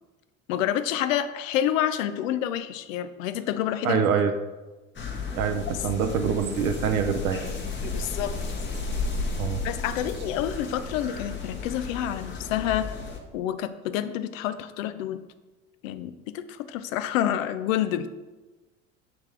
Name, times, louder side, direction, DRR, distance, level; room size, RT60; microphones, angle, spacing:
voice 1, 0.5-4.0 7.8-8.3 9.6-13.0 13.3-15.2 15.8-18.1, left 11 dB, 70° left, 12 dB, 0.6 m, -28 dB
voice 2, 3.8-4.3 5.4-7.4 9.4-9.6, right 7 dB, 80° right, 7 dB, 0.6 m, -25 dB
sound 1, 5.0-13.2, left 4 dB, 25° left, 1.1 m, -33 dB
6.0 x 3.6 x 4.6 m, 1.2 s
hypercardioid pair, 75°, 41 cm